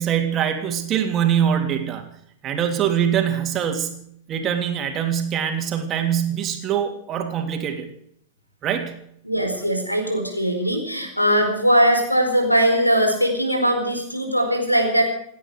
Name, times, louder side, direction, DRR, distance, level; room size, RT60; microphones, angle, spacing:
voice 1, 0.0-2.1 2.4-4.0 4.3-7.9 8.6-9.0, right 9 dB, 30° right, 5 dB, 3.1 m, -23 dB
voice 2, 9.2-15.0, equal, 90° left, 4 dB, 4.5 m, -20 dB
28.5 x 10.0 x 4.9 m, 0.68 s
figure-of-eight pair, 90°, 0 cm